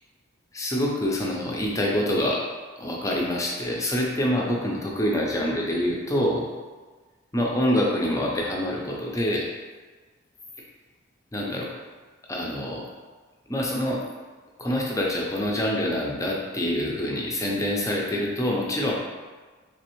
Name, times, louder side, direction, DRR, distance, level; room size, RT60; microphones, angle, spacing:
voice 1, 0.5-2.4 2.8-6.5 7.3-9.5 11.3-11.7 12.3-12.9 13.5-14.0 14.6-18.9, left 1 dB, 15° left, -2 dB, 0.5 m, -26 dB
3.4 x 3.2 x 3.0 m, 1.4 s
head